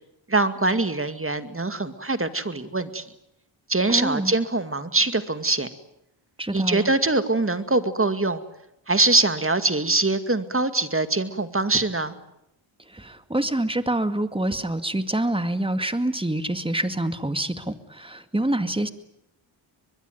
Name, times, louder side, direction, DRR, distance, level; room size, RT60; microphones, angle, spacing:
voice 1, 0.3-3.1 3.7-5.7 6.5-8.4 8.9-12.1, right 2 dB, 25° right, 10 dB, 2.3 m, -23 dB
voice 2, 3.9-4.3 6.4-6.9 12.9-18.9, right 1 dB, 10° right, 10 dB, 2.2 m, -26 dB
24.0 x 21.5 x 9.4 m, 0.82 s
cardioid pair, 55°, 49 cm